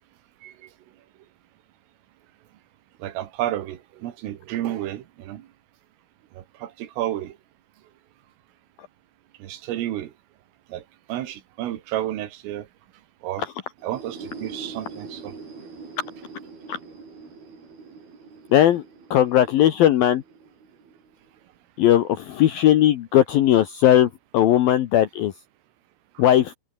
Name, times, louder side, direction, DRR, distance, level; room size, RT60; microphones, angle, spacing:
voice 1, 3.0-5.5 6.4-7.4 9.4-10.1 10.7-10.8 11.1-12.7 13.2-13.5 13.8-15.4, right 13 dB, 85° right, 4.5 m, -31 dB
sound 1, 13.8-21.4, right 4 dB, 50° right, 9.1 m, -43 dB
voice 2, 18.5-18.8 19.1-20.2 21.8-25.3 26.2-26.5, left 12 dB, 75° left, 2.2 m, -18 dB
omnidirectional pair, 5.7 m